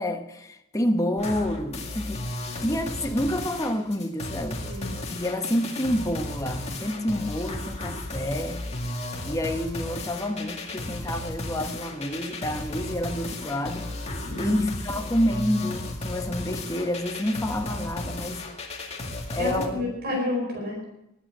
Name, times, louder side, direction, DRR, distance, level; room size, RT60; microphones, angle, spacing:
voice 1, 0.0-2.3 2.6-4.6 5.1-8.6 9.2-13.9 14.4-18.4 19.3-19.8, left 1 dB, 15° left, 1.0 m, -28 dB
sound 1, 1.2-19.7, left 2 dB, 30° left, 2.1 m, -34 dB
voice 2, 4.6-5.0 14.2-14.6 19.4-20.8, left 2 dB, 50° right, 4.8 m, -30 dB
21.0 x 9.2 x 6.2 m
head